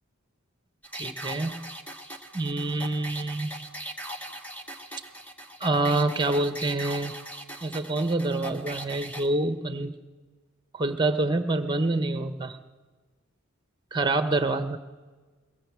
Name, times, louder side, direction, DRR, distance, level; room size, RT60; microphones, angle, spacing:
sound 1, 0.8-9.3, right 1 dB, 5° left, 1.4 m, -40 dB
voice 1, 0.9-1.6 2.3-3.5 5.6-7.1 7.6-10.0 10.7-12.6 13.9-14.8, right 2 dB, 20° right, 10 dB, 1.2 m, -26 dB
22.5 x 19.5 x 7.5 m, 1.4 s
head